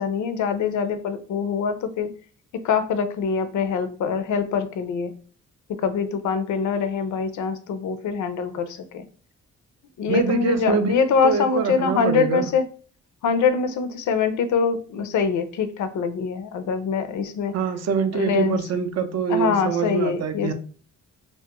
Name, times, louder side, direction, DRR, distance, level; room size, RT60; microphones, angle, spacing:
voice 1, 0.0-2.1 2.6-5.1 5.7-9.0 10.0-12.6 13.2-17.6 18.1-18.6 19.3-20.5, left 6 dB, 70° left, 10 dB, 0.5 m, -24 dB
voice 2, 10.1-11.0 11.2-12.5 17.5-20.5, right 6 dB, 55° right, 8 dB, 0.5 m, -24 dB
2.3 x 2.1 x 2.8 m, 0.42 s
cardioid pair, 80°, 32 cm